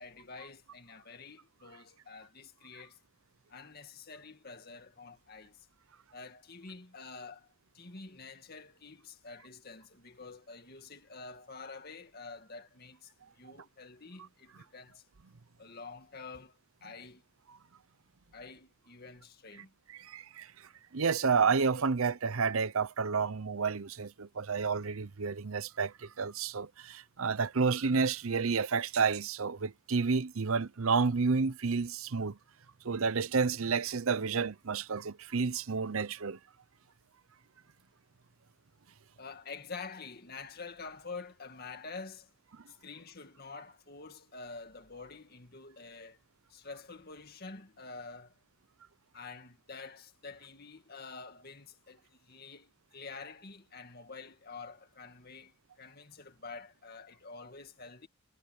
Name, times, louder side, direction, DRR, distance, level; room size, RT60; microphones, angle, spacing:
voice 1, 0.0-3.0 3.5-5.7 6.1-7.5 7.7-15.0 15.6-17.2 18.3-19.7 39.2-42.3 42.7-46.2 46.5-48.3 49.1-58.1, left 4 dB, 45° left, 2.2 m, -48 dB
voice 2, 19.9-32.4 32.8-36.4, right 5 dB, 80° right, 0.7 m, -30 dB
head